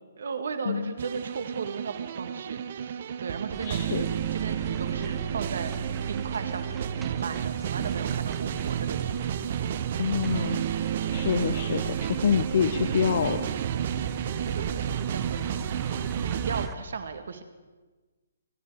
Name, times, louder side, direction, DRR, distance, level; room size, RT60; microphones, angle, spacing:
voice 1, 0.2-5.7 6.1-6.7 7.0-9.2 9.7-9.8 13.9-17.4, right 5 dB, 70° right, 8 dB, 1.9 m, -37 dB
sound 1, 1.0-16.7, right 9 dB, 50° right, 0.7 m, -31 dB
sound 2, 3.5-16.7, right 4 dB, 15° right, 1.0 m, -42 dB
voice 2, 3.6-4.1 10.0-10.6 11.1-13.5, left 7 dB, 60° left, 11 dB, 0.8 m, -27 dB
26.5 x 11.0 x 4.9 m, 1.3 s
hypercardioid pair, 140°, 0 cm